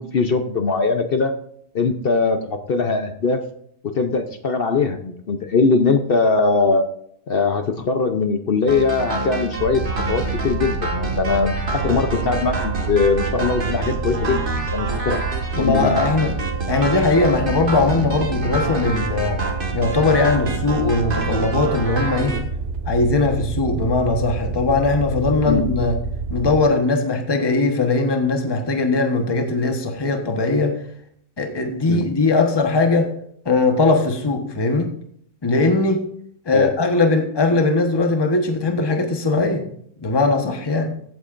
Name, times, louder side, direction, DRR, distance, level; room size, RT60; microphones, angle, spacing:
voice 1, 0.0-1.4 1.7-3.4 3.8-6.9 7.3-14.4 14.7-15.2 15.6-16.0 25.5-25.7 31.9-32.1 36.5-36.7, left 4 dB, 50° left, 7 dB, 0.8 m, -21 dB
sound 1, 8.7-22.4, right 2 dB, 35° right, 1.7 m, -28 dB
sound 2, 9.6-26.6, right 4 dB, 55° right, 1.1 m, -28 dB
voice 2, 15.6-16.3 16.7-19.4 19.7-22.4 22.9-26.0 26.3-30.8 31.4-33.1 33.4-34.9 35.4-36.0 36.5-39.6 40.0-41.0, left 3 dB, 20° left, 4 dB, 1.1 m, -20 dB
15.5 x 8.2 x 2.5 m, 0.66 s
omnidirectional pair, 1.6 m